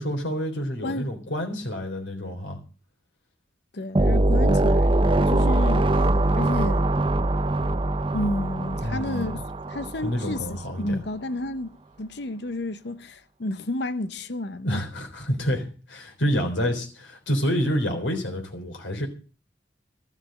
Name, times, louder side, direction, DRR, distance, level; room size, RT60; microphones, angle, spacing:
voice 1, 0.0-2.6 8.8-9.4 10.0-11.0 14.6-19.1, equal, 90° left, 3.8 m, -28 dB
voice 2, 0.8-1.1 3.7-6.1 6.3-6.9 8.1-9.4 9.7-14.8, left 1 dB, 65° left, 0.8 m, -31 dB
sound 1, 4.0-10.4, right 1 dB, 30° right, 0.6 m, -22 dB
13.5 x 7.3 x 7.7 m
head